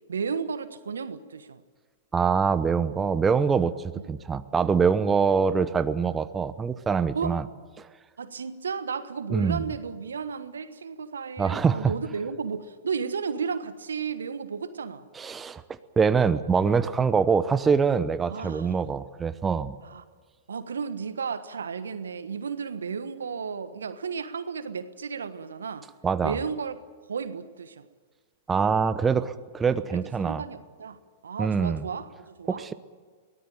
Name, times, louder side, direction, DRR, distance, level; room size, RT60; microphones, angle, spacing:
voice 1, 0.1-1.6 3.9-4.1 7.1-7.4 8.2-15.1 18.3-18.7 19.8-20.0 20.5-25.9 26.2-26.8 27.0-27.9 29.9-32.6, right 6 dB, 75° right, 12 dB, 1.3 m, -33 dB
voice 2, 2.1-3.7 4.1-7.4 7.8-7.9 9.3-9.7 11.4-11.9 15.1-15.6 16.0-19.8 26.0-26.4 28.5-30.4 31.4-31.8 32.5-32.7, right 5 dB, 15° right, 12 dB, 0.9 m, -24 dB
23.0 x 18.0 x 9.1 m, 1.5 s
figure-of-eight pair, 100°, 0 cm